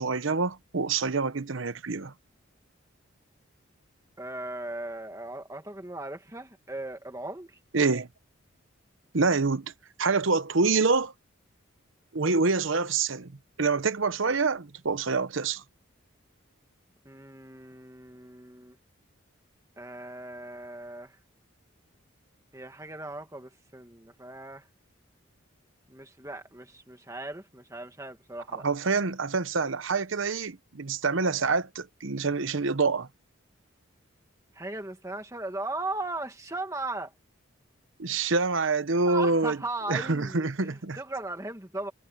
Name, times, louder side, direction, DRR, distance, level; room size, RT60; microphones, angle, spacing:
voice 1, 0.0-2.1 7.7-8.1 9.1-9.7 10.0-11.1 12.1-13.3 13.6-15.6 28.5-33.1 38.0-39.6 39.9-41.0, right 4 dB, 70° right, 0.9 m, -26 dB
voice 2, 4.2-7.6 17.1-18.8 19.8-21.2 22.5-24.7 25.9-28.7 34.5-37.1 39.0-41.9, right 2 dB, 15° right, 2.0 m, -38 dB
head